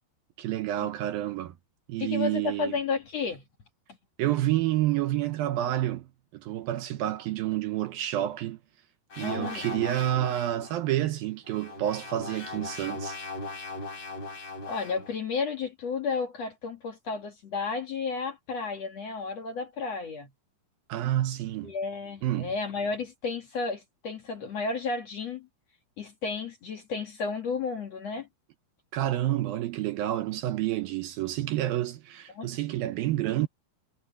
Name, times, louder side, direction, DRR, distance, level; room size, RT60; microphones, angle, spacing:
voice 1, 0.4-1.5 1.9-2.8 4.2-8.6 9.2-13.2 20.9-21.7 22.2-22.5 28.9-33.5, right 13 dB, 75° right, 2.4 m, -29 dB
voice 2, 2.0-3.4 9.2-9.7 14.7-20.3 21.6-25.5 26.0-28.3 32.3-32.5, left 4 dB, 55° left, 2.1 m, -32 dB
sound 1, 9.1-10.7 11.5-15.1, left 2 dB, 25° left, 5.4 m, -38 dB
omnidirectional pair, 4.8 m